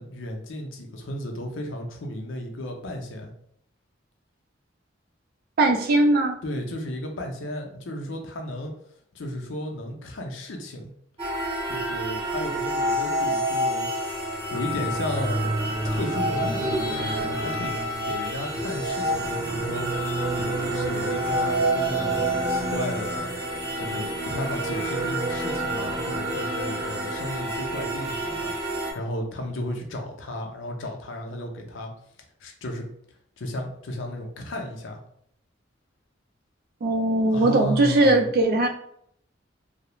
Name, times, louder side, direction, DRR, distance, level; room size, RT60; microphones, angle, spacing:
voice 1, 0.0-3.3 6.4-8.7 9.1-10.9 11.6-13.9 14.5-15.5 15.8-17.7 18.0-31.9 32.4-32.8 33.4-35.0 37.3-38.3, left 1 dB, 80° left, 2 dB, 0.5 m, -34 dB
voice 2, 5.6-6.4 36.8-38.7, right 2 dB, 50° right, 5 dB, 0.3 m, -20 dB
sound 1, 11.2-28.9, right 1 dB, 30° right, 0.7 m, -28 dB
2.3 x 2.0 x 2.9 m, 0.68 s
head